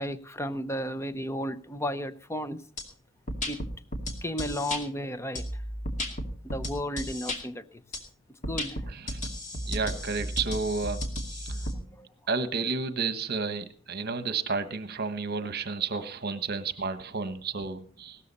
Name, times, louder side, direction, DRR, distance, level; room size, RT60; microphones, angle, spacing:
voice 1, 0.0-2.6 3.5-3.6 4.2-5.4 6.5-7.6 8.5-8.8 12.0-12.1, equal, 15° left, 12 dB, 0.8 m, -33 dB
sound 1, 2.8-2.9 3.3-4.8 5.3-7.4 7.9-8.0 8.4-11.7, equal, 40° left, 2.5 m, -33 dB
voice 2, 9.7-11.0 11.3-11.6 12.3-18.2, right 4 dB, 50° right, 11 dB, 1.2 m, -31 dB
17.0 x 13.0 x 4.2 m, 0.43 s
head